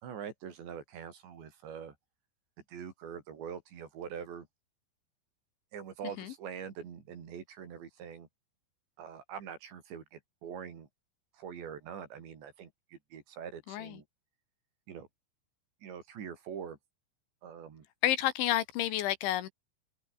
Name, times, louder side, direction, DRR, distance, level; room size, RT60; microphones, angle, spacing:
voice 1, 0.0-2.0 2.7-4.5 5.7-8.3 9.0-10.9 11.3-14.1 14.9-15.1 15.8-16.8 17.4-17.9, right 7 dB, 60° right, 5.6 m, -44 dB
voice 2, 18.0-19.5, left 13 dB, 75° left, 3.4 m, -30 dB
omnidirectional pair, 5.9 m